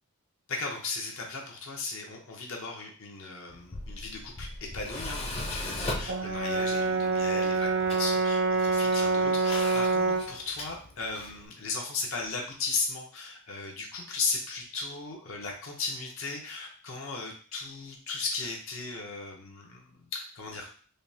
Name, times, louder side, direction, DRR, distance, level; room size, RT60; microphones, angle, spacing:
voice 1, 0.5-20.7, left 4 dB, 65° left, 0 dB, 0.7 m, -36 dB
Tools, 3.5-11.5, left 1 dB, 25° left, 0.5 m, -39 dB
Brass instrument, 6.1-10.4, right 3 dB, 50° right, 0.3 m, -26 dB
5.0 x 2.1 x 2.7 m, 0.43 s
head